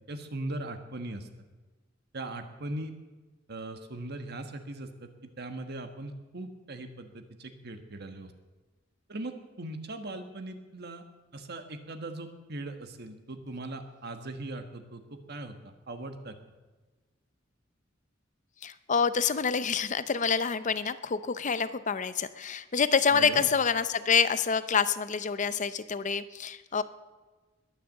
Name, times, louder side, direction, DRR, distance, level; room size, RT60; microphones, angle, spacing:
voice 1, 0.1-1.3 2.1-2.9 3.5-8.3 9.1-11.0 11.3-15.5 15.9-16.3 23.1-23.5, right 2 dB, 55° right, 7 dB, 1.5 m, -39 dB
voice 2, 18.6-26.8, left 6 dB, 40° left, 14 dB, 0.6 m, -27 dB
21.0 x 7.1 x 7.4 m, 1.2 s
head